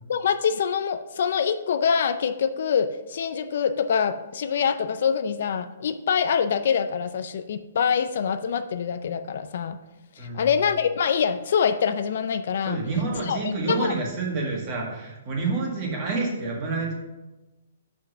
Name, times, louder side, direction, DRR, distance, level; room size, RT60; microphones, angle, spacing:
voice 1, 0.1-9.8 10.2-12.8 13.1-13.4 13.8-13.9, left 7 dB, 55° left, 11 dB, 0.4 m, -25 dB
voice 2, 10.2-10.5 12.7-16.9, right 3 dB, 25° right, -1 dB, 1.7 m, -28 dB
5.9 x 5.1 x 6.3 m, 1.1 s
hypercardioid pair, 165°, 0 cm